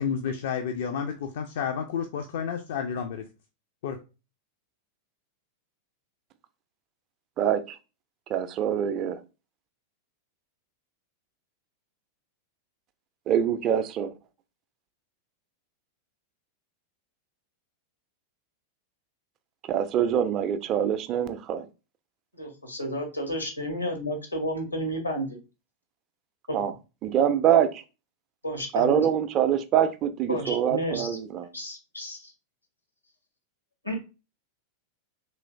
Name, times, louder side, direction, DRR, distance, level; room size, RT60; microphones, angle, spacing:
voice 1, 0.0-3.2 3.8-4.0, left 7 dB, 55° left, 0.3 m, -30 dB
voice 2, 7.4-7.8 8.3-9.2 13.3-14.1 19.7-21.7 26.5-26.7 27.0-27.8 28.7-31.5, right 9 dB, 35° right, 0.3 m, -24 dB
voice 3, 22.3-25.4 26.5-26.6 28.4-29.0 30.3-31.1 31.5-32.3 33.8-34.0, equal, 85° left, 1.0 m, -31 dB
3.1 x 2.9 x 2.5 m
figure-of-eight pair, 90°, 0 cm